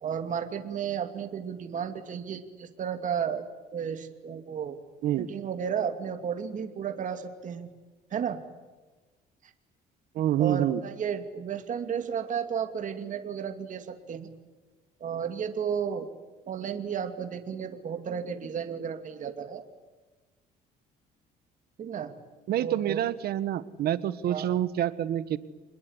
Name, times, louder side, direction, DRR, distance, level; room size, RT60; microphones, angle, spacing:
voice 1, 0.0-3.4 3.7-4.8 5.2-7.7 8.1-8.4 10.4-14.3 15.0-16.1 16.5-19.6 21.8-22.1 22.6-23.0 24.3-24.5, right 7 dB, 50° right, 7 dB, 2.7 m, -33 dB
voice 2, 10.1-10.8 22.5-25.4, right 11 dB, 70° right, 14 dB, 1.5 m, -27 dB
27.5 x 21.0 x 9.9 m, 1.2 s
cardioid pair, 110°, 17 cm